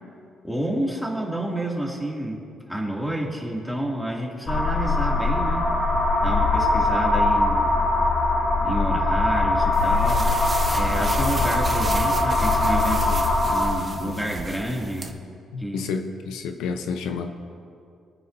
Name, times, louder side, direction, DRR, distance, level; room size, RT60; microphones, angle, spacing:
voice 1, 0.4-5.7 6.2-7.7 8.6-10.3 10.7-15.1 15.6-15.9, right 1 dB, ahead, -3 dB, 2.5 m, -29 dB
sound 1, 4.5-13.7, left 2 dB, 50° left, 3.4 m, -21 dB
sound 2, 9.7-15.1, right 3 dB, 30° right, 1.1 m, -35 dB
voice 2, 15.5-17.3, left 5 dB, 90° left, 6 dB, 0.8 m, -30 dB
23.0 x 9.5 x 2.7 m, 2.4 s
cardioid pair, 90°, 0 cm